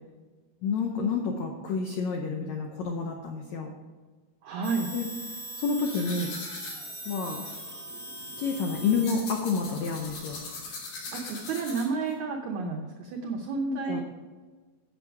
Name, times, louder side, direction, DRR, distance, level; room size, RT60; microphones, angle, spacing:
voice 1, 0.6-3.7 4.9-5.1 5.6-6.3 7.0-7.4 8.4-10.4 13.7-14.0, left 5 dB, 85° left, 2 dB, 1.5 m, -29 dB
voice 2, 4.4-4.9 11.1-14.0, right 4 dB, 85° right, 3 dB, 1.6 m, -31 dB
sound 1, 4.6-10.7, right 1 dB, 5° left, 0.8 m, -42 dB
sound 2, 5.8-12.1, left 3 dB, 70° left, 4.7 m, -41 dB
10.5 x 7.8 x 4.8 m, 1.4 s
omnidirectional pair, 4.5 m